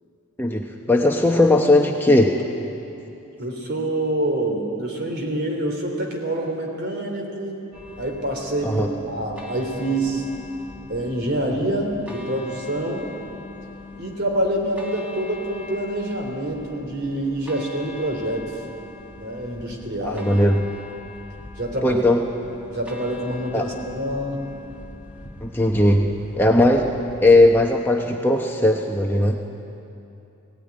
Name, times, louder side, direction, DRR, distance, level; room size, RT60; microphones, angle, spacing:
voice 1, 0.4-2.4 8.6-8.9 20.0-20.6 21.8-22.2 23.5-23.7 25.4-26.1 26.4-26.9 27.2-29.4, left 1 dB, 10° left, 1 dB, 0.8 m, -18 dB
voice 2, 3.4-7.6 8.0-10.3 10.9-13.1 14.0-18.5 19.2-20.3 21.6-22.0 22.7-24.4, right 1 dB, 50° right, 1 dB, 3.4 m, -26 dB
sound 1, 7.7-27.7, left 2 dB, 5° right, 1.6 m, -42 dB
17.5 x 17.0 x 9.7 m, 2.8 s
head